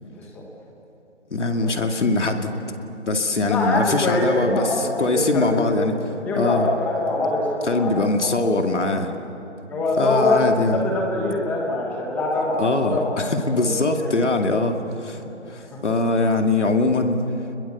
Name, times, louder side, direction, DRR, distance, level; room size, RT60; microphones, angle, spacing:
voice 1, 0.0-0.4 1.6-1.8 3.4-5.8 6.2-8.5 9.7-10.4 10.7-13.1 13.5-14.1 15.2-15.8, left 2 dB, 5° left, -1 dB, 1.2 m, -24 dB
voice 2, 1.3-2.5 3.1-6.0 6.4-6.7 7.7-9.1 10.0-10.8 12.6-14.8 15.0-15.2 15.5-17.2, left 2 dB, 75° left, 4 dB, 2.5 m, -22 dB
29.0 x 21.5 x 7.1 m, 3.0 s
figure-of-eight pair, 160°, 36 cm